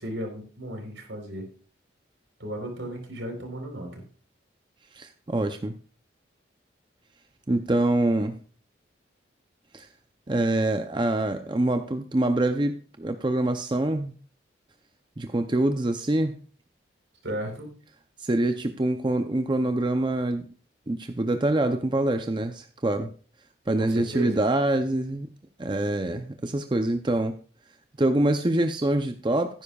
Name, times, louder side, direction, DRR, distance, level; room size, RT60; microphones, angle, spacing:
voice 1, 0.0-1.5 2.4-4.0 17.2-17.7 23.8-24.4, right 1 dB, 80° right, 3 dB, 3.8 m, -34 dB
voice 2, 4.9-5.8 7.5-8.4 9.7-9.9 10.3-14.1 15.2-16.4 18.2-20.5 20.9-23.1 23.7-25.3 25.6-27.3 28.0-29.6, right 1 dB, 25° right, 7 dB, 0.5 m, -25 dB
16.5 x 9.9 x 2.3 m, 0.40 s
head